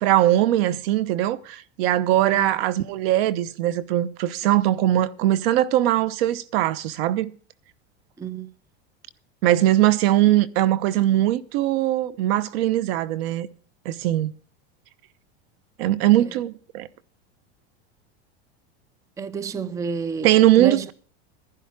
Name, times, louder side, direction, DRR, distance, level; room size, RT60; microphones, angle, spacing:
voice 1, 0.0-7.3 9.4-13.5 13.8-14.3 15.8-16.9 20.2-20.9, right 13 dB, 65° right, 1.0 m, -20 dB
voice 2, 2.2-2.6 8.2-8.5 19.2-20.9, right 6 dB, 10° right, 0.5 m, -30 dB
11.5 x 10.5 x 4.7 m
supercardioid pair, 125°, 32 cm